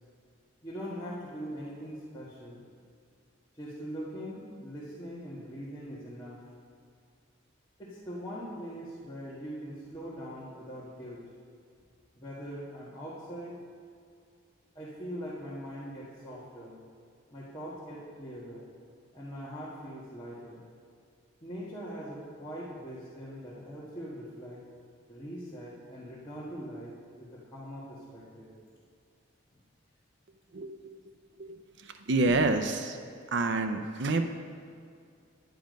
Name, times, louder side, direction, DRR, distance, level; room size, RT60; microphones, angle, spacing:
voice 1, 0.6-2.6 3.5-6.4 7.8-11.2 12.1-13.6 14.7-16.8 17.3-18.6 19.1-20.6 21.4-24.6 25.1-28.5, equal, 20° left, -9 dB, 1.6 m, -42 dB
voice 2, 30.5-30.9 31.4-33.0 33.3-34.2, right 2 dB, 55° right, 7 dB, 0.5 m, -28 dB
10.5 x 9.3 x 5.2 m, 2.3 s
head